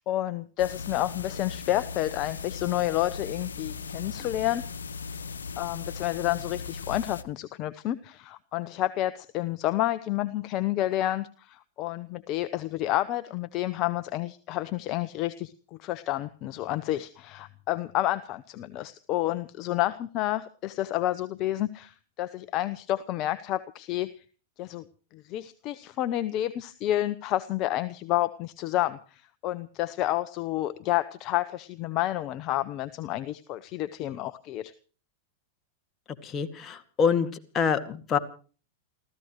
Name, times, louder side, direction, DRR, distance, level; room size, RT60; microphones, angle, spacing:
voice 1, 0.1-4.6 5.6-24.2 24.6-24.8 25.1-34.7, left 14 dB, 45° left, 14 dB, 0.9 m, -30 dB
sound 1, 0.6-7.2, left 5 dB, 90° left, 1.1 m, -38 dB
voice 2, 36.2-37.3 37.5-38.2, left 6 dB, 30° left, 8 dB, 2.2 m, -25 dB
29.5 x 15.0 x 3.1 m, 0.39 s
hypercardioid pair, 110°, 0 cm